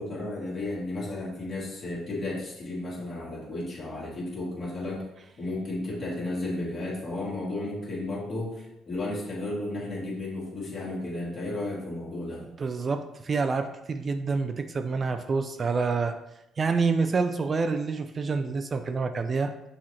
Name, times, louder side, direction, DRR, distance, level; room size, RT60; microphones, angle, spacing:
voice 1, 0.0-5.1 5.4-12.5, left 2 dB, 45° left, -4 dB, 1.7 m, -33 dB
voice 2, 12.6-16.2 16.6-19.5, right 4 dB, 40° right, 8 dB, 0.3 m, -27 dB
6.1 x 3.1 x 2.8 m, 0.86 s
cardioid pair, 90°, 0 cm